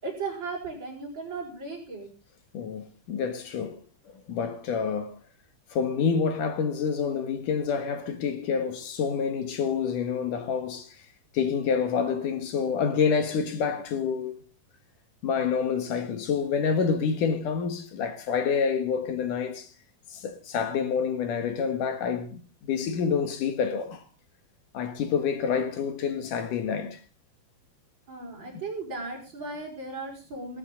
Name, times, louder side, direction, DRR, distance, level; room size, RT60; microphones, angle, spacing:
voice 1, 0.0-2.1 28.1-30.6, right 3 dB, 30° right, 6.2 m, -36 dB
voice 2, 2.5-3.8 4.1-5.2 5.7-11.0 11.3-14.4 15.2-19.7 20.1-24.0 24.7-27.0, left 6 dB, 60° left, 3.0 m, -28 dB
17.0 x 14.5 x 3.9 m
omnidirectional pair, 4.4 m